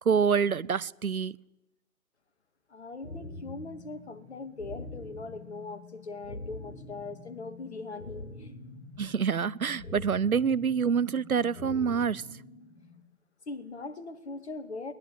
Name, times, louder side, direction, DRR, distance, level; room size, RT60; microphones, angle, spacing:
voice 1, 0.1-1.4 9.0-12.2, right 6 dB, 75° right, 0.8 m, -26 dB
voice 2, 2.7-8.5 13.5-14.9, left 3 dB, 50° left, 2.6 m, -41 dB
sound 1, 3.0-13.0, left 2 dB, 70° left, 5.0 m, -45 dB
21.5 x 19.5 x 9.7 m
figure-of-eight pair, 140°, 43 cm